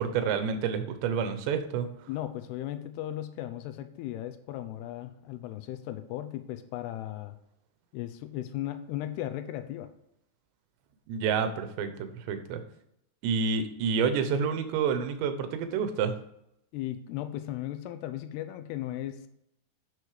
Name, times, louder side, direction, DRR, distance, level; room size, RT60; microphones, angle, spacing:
voice 1, 0.0-1.9 11.1-12.6 13.2-16.1, right 6 dB, 90° right, 9 dB, 3.3 m, -29 dB
voice 2, 2.1-7.4 7.9-9.9 16.7-19.3, left 13 dB, 80° left, 10 dB, 2.6 m, -36 dB
11.0 x 6.5 x 5.0 m, 0.77 s
omnidirectional pair, 4.9 m